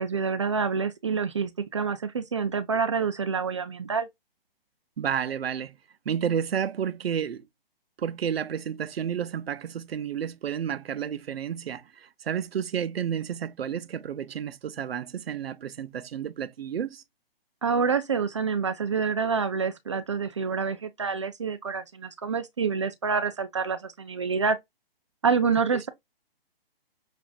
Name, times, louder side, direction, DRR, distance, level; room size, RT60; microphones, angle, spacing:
voice 1, 0.0-4.1 17.6-24.6 25.2-25.9, right 5 dB, 30° right, 0.4 m, -27 dB
voice 2, 5.0-5.8 6.1-7.5 8.0-17.0, right 8 dB, 80° right, 0.6 m, -31 dB
6.1 x 2.5 x 2.3 m
hypercardioid pair, 155°, 30 cm